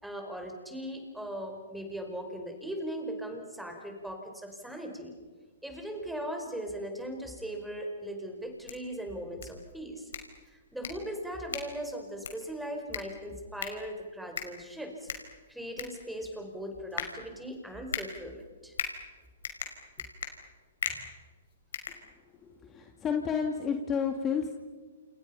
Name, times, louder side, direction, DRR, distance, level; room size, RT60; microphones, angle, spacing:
voice 1, 0.0-5.1 5.6-10.1 10.4-15.1 15.5-18.7, equal, ahead, 3 dB, 5.2 m, -39 dB
sound 1, 8.4-22.6, left 7 dB, 75° left, 5.2 m, -41 dB
voice 2, 22.4-24.5, left 6 dB, 20° left, 3 dB, 2.3 m, -31 dB
29.0 x 28.5 x 5.8 m, 1.4 s
hypercardioid pair, 135°, 0 cm